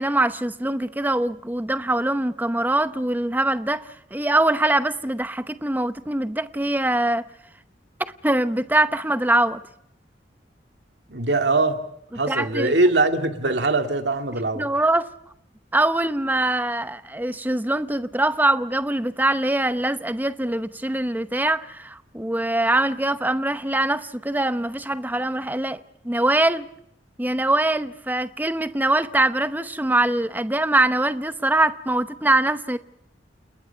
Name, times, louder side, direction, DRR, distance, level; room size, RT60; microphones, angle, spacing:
voice 1, 0.0-7.3 8.2-9.6 12.3-12.7 14.6-15.1 15.7-26.7 27.2-32.8, right 1 dB, 10° right, 0.8 m, -23 dB
voice 2, 11.1-11.8 12.1-14.7, right 2 dB, 75° right, 2.3 m, -22 dB
29.0 x 20.0 x 5.8 m
head